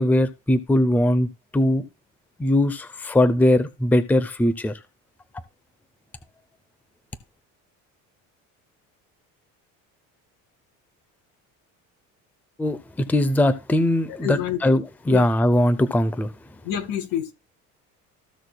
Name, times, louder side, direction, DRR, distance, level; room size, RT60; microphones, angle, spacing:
voice 1, 0.0-1.8 2.4-4.7 12.6-16.3, left 1 dB, 5° left, 0.6 m, -20 dB
voice 2, 14.1-14.6 15.1-15.3 16.6-17.3, left 10 dB, 75° left, 2.1 m, -27 dB
14.5 x 6.2 x 2.3 m
cardioid pair, 140°, 33 cm